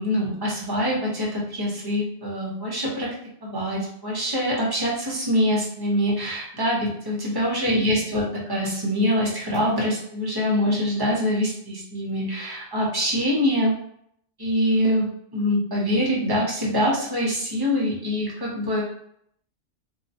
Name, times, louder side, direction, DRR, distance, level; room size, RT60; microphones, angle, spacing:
voice 1, 0.0-3.1 3.4-13.7 14.4-18.8, equal, 25° right, -4 dB, 0.7 m, -24 dB
2.7 x 2.1 x 2.7 m, 0.69 s
omnidirectional pair, 1.1 m